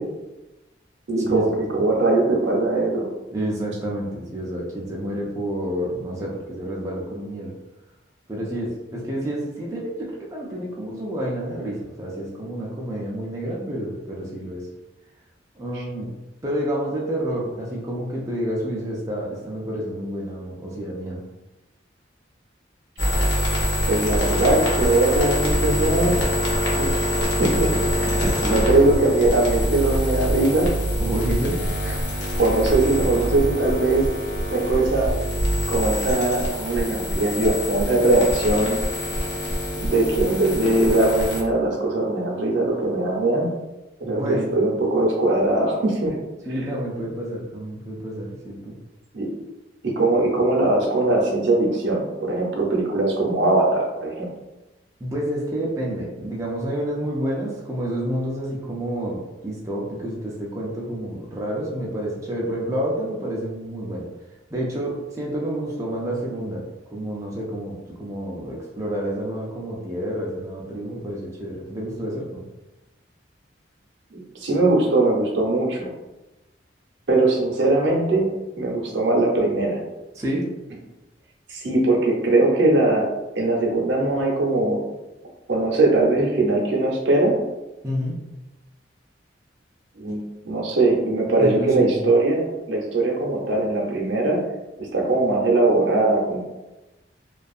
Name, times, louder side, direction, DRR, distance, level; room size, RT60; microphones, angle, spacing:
voice 1, 1.1-3.1 15.7-15.8 23.9-26.2 26.7-27.1 27.4-30.7 32.4-34.1 34.5-35.2 35.7-38.8 39.8-43.5 44.0-46.1 49.1-49.3 50.0-54.3 74.1-75.9 77.1-78.3 78.6-79.8 81.5-83.1 83.4-84.8 85.5-87.4 90.0-94.4 94.9-96.4, right 2 dB, 75° right, -2 dB, 0.6 m, -21 dB
voice 2, 3.3-7.5 8.3-14.7 15.6-16.1 16.4-21.2 28.2-28.4 31.0-31.6 31.8-32.0 44.0-44.6 46.5-48.7 55.0-64.1 64.5-72.4 80.1-80.4 87.8-88.2 91.4-92.0, right 1 dB, 15° right, -4 dB, 0.3 m, -29 dB
sound 1, 23.0-41.4, equal, 80° left, 0.6 m, -24 dB
2.6 x 2.3 x 2.3 m, 1.1 s
head